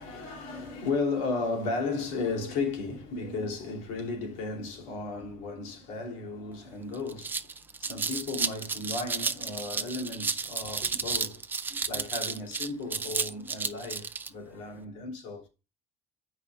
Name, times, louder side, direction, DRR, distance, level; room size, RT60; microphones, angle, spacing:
voice 1, 0.0-7.4 7.8-11.4 11.7-15.5, left 3 dB, 85° left, 2.7 m, -34 dB
sound 1, 6.5-6.6 6.9-14.3, right 5 dB, 15° right, 0.4 m, -32 dB
12.5 x 4.9 x 2.3 m
cardioid pair, 150°, 12 cm